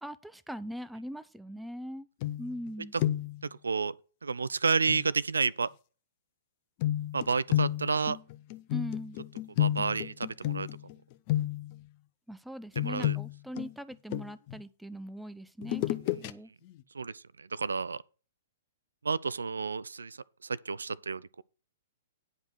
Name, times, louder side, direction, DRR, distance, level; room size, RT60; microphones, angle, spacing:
voice 1, 0.0-2.1 2.4-2.9 8.7-9.2 12.3-16.5, equal, ahead, 0.6 m, -41 dB
sound 1, 2.2-2.7 3.0-3.5 4.9-5.0 6.8-10.9 11.3-11.8 12.8-14.6 15.6-16.3 16.7-16.8, left 13 dB, 40° left, 0.8 m, -31 dB
voice 2, 3.6-3.9 4.2-5.7 7.1-8.2 9.6-10.7 12.8-13.2 16.9-18.0 19.0-21.4, right 5 dB, 75° right, 0.4 m, -31 dB
9.9 x 5.2 x 6.2 m
figure-of-eight pair, 115°, 0 cm